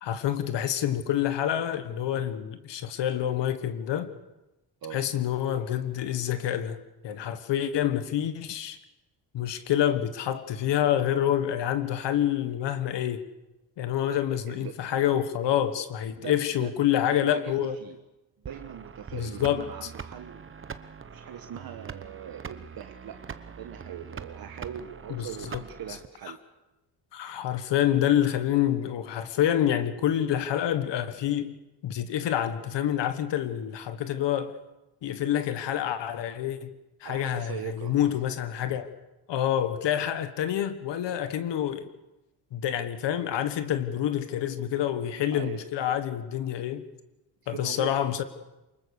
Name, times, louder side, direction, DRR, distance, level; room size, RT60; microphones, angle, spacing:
voice 1, 0.0-4.1 4.9-8.8 9.3-13.2 13.8-17.8 19.1-19.7 25.1-25.6 27.1-31.5 31.8-34.6 35.0-36.7 37.0-38.9 39.3-41.9 42.5-46.8 47.5-48.2, left 11 dB, 75° left, 1.5 m, -27 dB
voice 2, 16.2-16.7 17.1-18.0 18.4-20.5 21.1-26.4 37.0-38.4 45.3-45.7 47.4-48.0, right 9 dB, 55° right, 1.3 m, -41 dB
sound 1, 18.4-26.1, right 6 dB, 30° right, 1.0 m, -43 dB
24.5 x 21.0 x 6.6 m
cardioid pair, 115°, 43 cm